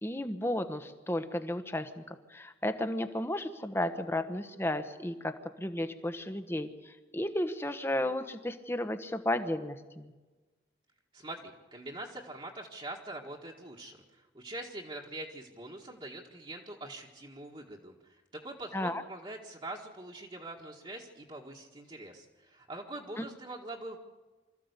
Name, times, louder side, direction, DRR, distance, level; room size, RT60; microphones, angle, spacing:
voice 1, 0.0-10.1 18.7-19.0 23.2-23.3, left 1 dB, 15° left, 9 dB, 1.2 m, -33 dB
voice 2, 11.1-24.0, right 2 dB, 30° right, -2 dB, 1.7 m, -44 dB
25.0 x 14.5 x 8.2 m, 1.3 s
head